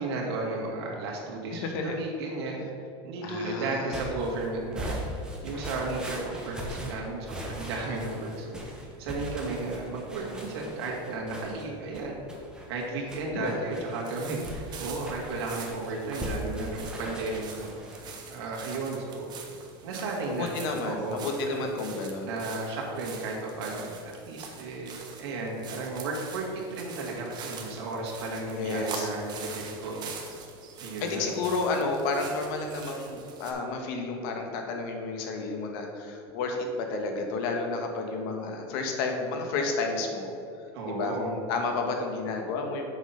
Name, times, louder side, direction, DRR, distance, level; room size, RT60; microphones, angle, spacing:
voice 1, 0.0-2.7 3.0-5.0 5.4-8.6 9.0-12.2 12.7-17.7 18.3-19.3 19.8-20.5 20.8-21.6 22.3-23.9 24.3-30.1 30.8-31.3 40.7-41.3, right 3 dB, 90° right, -2 dB, 2.1 m, -34 dB
voice 2, 1.6-2.0 3.2-4.0 13.3-13.6 20.3-22.3 28.5-29.1 31.0-40.3 40.6-42.9, left 3 dB, 65° left, 3 dB, 1.4 m, -31 dB
sound 1, 3.9-18.2, equal, 5° right, 1.2 m, -40 dB
sound 2, 14.0-33.5, right 5 dB, 35° right, 1.1 m, -44 dB
7.2 x 6.0 x 5.7 m, 2.6 s
supercardioid pair, 150°, 13 cm